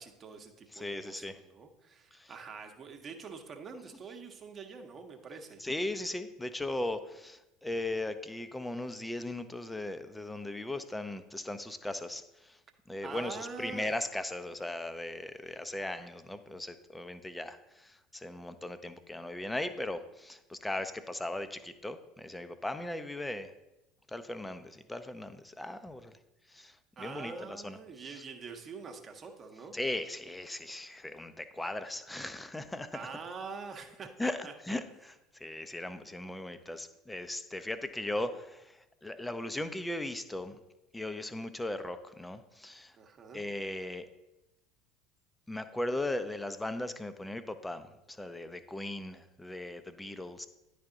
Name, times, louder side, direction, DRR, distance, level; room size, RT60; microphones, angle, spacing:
voice 1, 0.0-5.6 13.0-13.9 27.0-29.8 32.9-34.5 43.0-43.5, right 5 dB, 35° right, 5 dB, 0.9 m, -45 dB
voice 2, 0.7-1.4 2.1-2.3 5.6-12.6 12.9-23.5 24.1-26.2 26.5-27.8 29.7-33.0 34.2-40.6 40.9-43.0 43.3-44.1 45.5-50.5, left 1 dB, 10° left, 11 dB, 0.5 m, -38 dB
10.5 x 3.5 x 3.8 m, 0.96 s
figure-of-eight pair, 65°, 0 cm